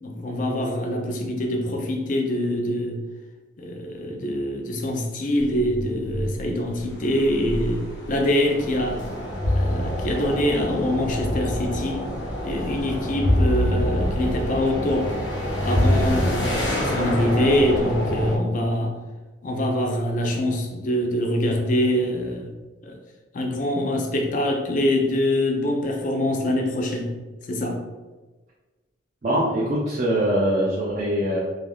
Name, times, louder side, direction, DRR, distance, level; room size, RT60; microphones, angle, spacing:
voice 1, 0.0-3.0 3.6-9.1 9.5-12.0 12.4-15.1 15.6-18.9 19.4-22.5 22.8-23.0 23.3-27.1 27.5-27.8, left 1 dB, 45° left, 3 dB, 0.4 m, -24 dB
sound 1, 5.4-18.4, left 1 dB, 70° left, 0.7 m, -26 dB
voice 2, 29.2-31.4, right 1 dB, 40° right, -5 dB, 0.4 m, -23 dB
3.2 x 2.4 x 2.3 m, 1.2 s
head